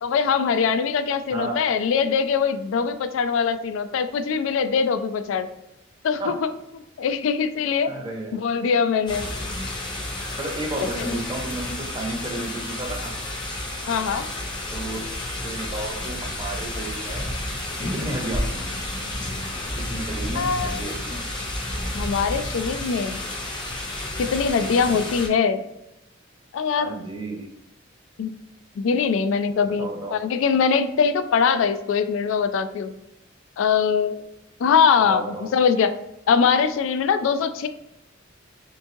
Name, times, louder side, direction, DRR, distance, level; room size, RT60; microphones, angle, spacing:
voice 1, 0.0-5.5 6.0-6.5 7.0-7.9 8.3-9.3 10.8-11.1 13.8-14.3 20.3-20.8 21.9-23.2 24.2-25.6 26.5-26.9 28.2-28.3 28.8-32.9 33.6-34.2 34.6-35.9 36.3-37.7, left 6 dB, 75° left, 11 dB, 0.3 m, -22 dB
voice 2, 1.3-1.6 6.2-6.3 7.9-8.5 10.4-13.1 14.7-17.3 17.9-18.6 19.7-21.2 24.6-25.0 26.8-27.4 29.6-30.2 35.1-35.5, right 2 dB, 25° right, 1 dB, 0.7 m, -32 dB
sound 1, 9.1-25.3, left 1 dB, 25° left, 0.6 m, -31 dB
3.4 x 3.0 x 2.6 m, 0.88 s
head